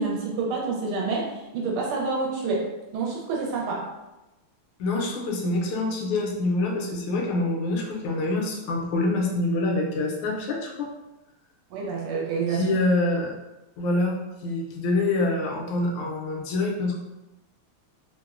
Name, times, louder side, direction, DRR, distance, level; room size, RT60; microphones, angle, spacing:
voice 1, 0.0-3.9 11.7-12.7, right 4 dB, 80° right, -2 dB, 1.4 m, -28 dB
voice 2, 4.8-10.9 12.5-13.3 13.8-16.9, left 2 dB, 80° left, -1 dB, 1.4 m, -26 dB
3.6 x 2.0 x 2.3 m, 1.0 s
omnidirectional pair, 2.4 m